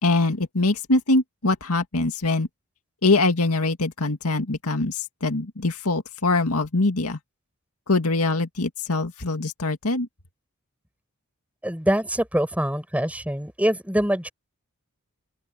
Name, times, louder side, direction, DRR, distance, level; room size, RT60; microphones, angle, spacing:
voice 1, 0.0-2.5 3.0-7.2 7.9-10.1, left 2 dB, 85° left, 2.1 m, -23 dB
voice 2, 11.6-14.3, right 1 dB, 5° right, 6.2 m, -24 dB
open air
head